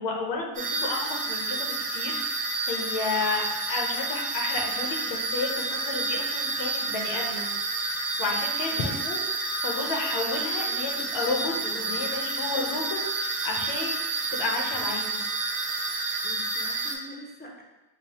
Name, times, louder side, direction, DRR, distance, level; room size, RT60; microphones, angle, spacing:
voice 1, 0.0-2.2 2.6-7.5 7.9-9.2 9.6-14.0 14.3-15.2, left 3 dB, 80° left, 0 dB, 0.9 m, -32 dB
sound 1, 0.5-16.9, right 3 dB, 20° right, 0.6 m, -30 dB
voice 2, 8.7-9.0 11.6-12.0 16.2-17.6, equal, 25° left, -1 dB, 0.5 m, -45 dB
5.2 x 2.1 x 2.9 m, 1.1 s
cardioid pair, 165°, 43 cm